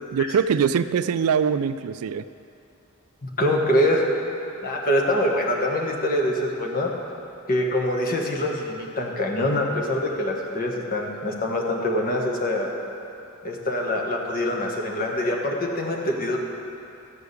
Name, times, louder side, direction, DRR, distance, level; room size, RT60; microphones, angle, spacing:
voice 1, 0.1-2.3, right 7 dB, 90° right, 13 dB, 0.4 m, -22 dB
voice 2, 3.2-4.1 4.6-6.9 7.5-12.7 13.4-16.4, left 1 dB, 40° left, 0 dB, 1.3 m, -24 dB
13.0 x 4.8 x 8.2 m, 2.7 s
head